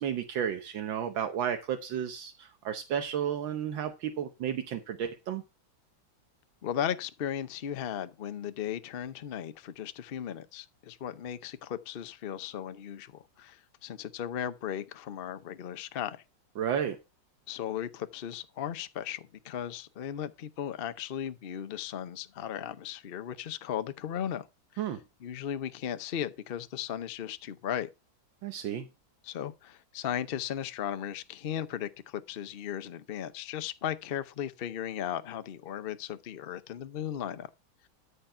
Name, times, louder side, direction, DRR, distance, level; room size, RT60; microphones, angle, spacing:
voice 1, 0.0-5.4 16.6-17.0 24.8-25.0 28.4-28.9, right 9 dB, 80° right, 1.7 m, -32 dB
voice 2, 6.6-16.2 17.5-24.5 24.7-24.9 25.2-27.9 29.2-37.5, left 9 dB, 80° left, 0.5 m, -36 dB
13.0 x 5.2 x 5.6 m
omnidirectional pair, 2.1 m